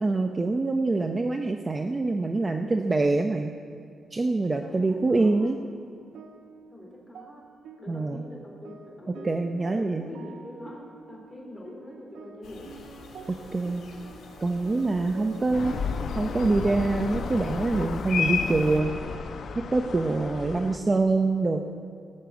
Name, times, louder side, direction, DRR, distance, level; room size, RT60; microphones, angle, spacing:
voice 1, 0.0-3.5 4.1-5.6 7.9-8.2 9.2-10.1 13.5-13.8 14.4-15.7 16.1-18.9 19.6-21.6, right 3 dB, 25° right, 5 dB, 0.6 m, -25 dB
voice 2, 4.6-5.5 6.7-7.5 7.8-9.4 9.7-12.7 13.1-13.3 20.4-20.7, left 1 dB, 10° left, -2 dB, 3.3 m, -43 dB
sound 1, 5.6-19.2, right 6 dB, 85° right, 0.9 m, -48 dB
sound 2, 12.4-18.8, left 6 dB, 75° left, 2.4 m, -36 dB
sound 3, 15.5-20.8, left 5 dB, 60° left, 0.9 m, -34 dB
17.0 x 6.7 x 7.8 m, 2.4 s
cardioid pair, 125°, 0 cm